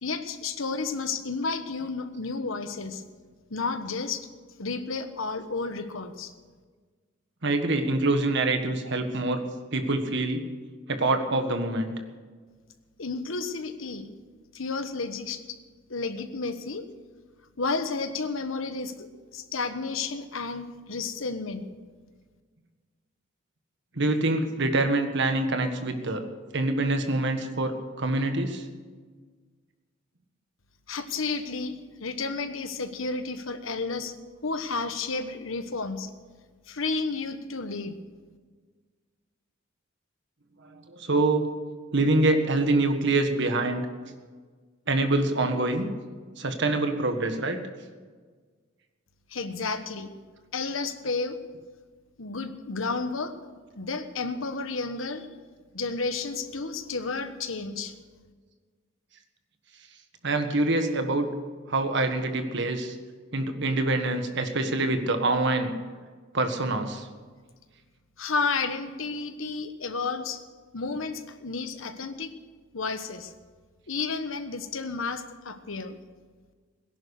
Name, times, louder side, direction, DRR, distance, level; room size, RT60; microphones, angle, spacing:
voice 1, 0.0-3.0 3.5-4.3 4.6-6.3 13.0-14.1 14.5-15.6 15.9-16.9 17.6-21.7 30.9-34.1 34.4-36.1 36.7-37.9 49.3-50.1 50.5-51.4 52.2-53.3 53.7-55.3 55.7-57.9 68.2-70.4 70.7-72.3 72.7-73.3 73.9-76.0, left 4 dB, 80° left, 9 dB, 1.3 m, -32 dB
voice 2, 7.4-9.4 9.7-10.4 10.9-11.9 23.9-26.2 26.5-28.6 40.6-41.4 41.9-43.9 44.9-45.9 46.4-47.6 60.2-61.3 61.7-63.0 63.3-65.7 66.3-67.1, right 2 dB, 60° right, 7 dB, 1.6 m, -25 dB
18.0 x 11.0 x 6.5 m, 1.5 s
head